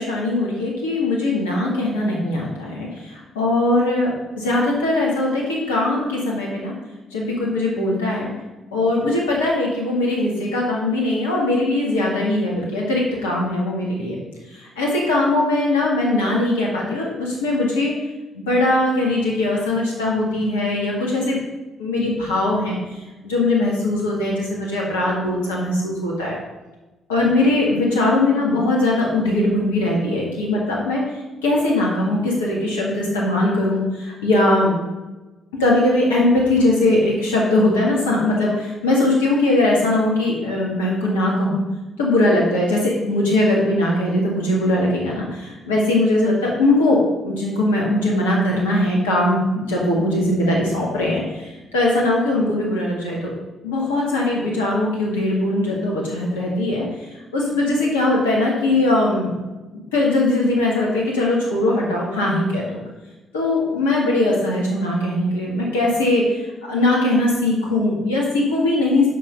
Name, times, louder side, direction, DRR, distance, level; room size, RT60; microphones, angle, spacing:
voice 1, 0.0-4.1 4.4-6.7 7.1-8.3 8.7-14.2 14.5-17.9 18.3-21.4 21.8-26.4 27.1-31.0 31.4-34.7 35.6-41.6 42.0-53.3 53.6-59.3 59.7-62.8 63.3-69.1, left 2 dB, 80° left, -3 dB, 2.0 m, -20 dB
8.3 x 5.7 x 5.2 m, 1.1 s
figure-of-eight pair, 40°, 0 cm